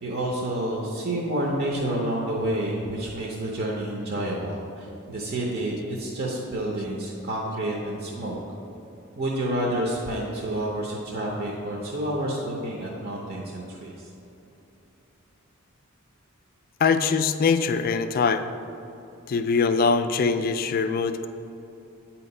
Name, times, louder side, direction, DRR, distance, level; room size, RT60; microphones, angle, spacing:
voice 1, 0.0-8.4 9.2-14.1, right 1 dB, 45° right, -3 dB, 0.7 m, -29 dB
voice 2, 16.8-18.5 19.3-21.3, left 5 dB, 45° left, 10 dB, 0.3 m, -23 dB
8.6 x 2.9 x 5.3 m, 2.9 s
head